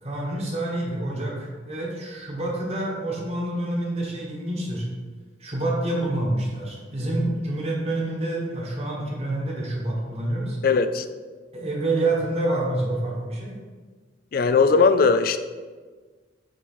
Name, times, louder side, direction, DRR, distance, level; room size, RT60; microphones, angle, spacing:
voice 1, 0.0-4.8 5.4-10.6 11.5-13.5, right 1 dB, 35° right, -2 dB, 1.2 m, -27 dB
voice 2, 10.6-11.1 14.3-15.4, left 4 dB, 50° left, 11 dB, 0.3 m, -19 dB
8.0 x 3.1 x 4.4 m, 1.5 s
head